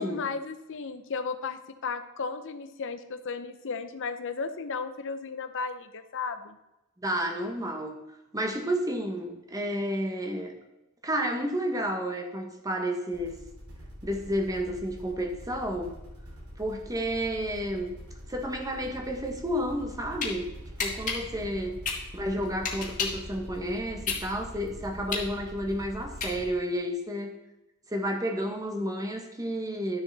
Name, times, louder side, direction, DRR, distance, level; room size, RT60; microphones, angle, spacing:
voice 1, 0.0-6.6, left 4 dB, 60° left, 9 dB, 0.8 m, -34 dB
voice 2, 7.0-8.0 8.3-10.5 11.0-13.3 14.0-15.9 16.6-17.9 18.3-20.5 20.8-21.8 22.1-27.4 27.9-30.0, equal, 15° right, 4 dB, 1.2 m, -31 dB
sound 1, 13.1-26.5, equal, 80° right, 2.9 m, -44 dB
sound 2, 19.8-20.3 20.8-23.3 23.7-26.7, left 5 dB, 35° left, 2.1 m, -32 dB
12.0 x 6.7 x 4.1 m, 0.97 s
head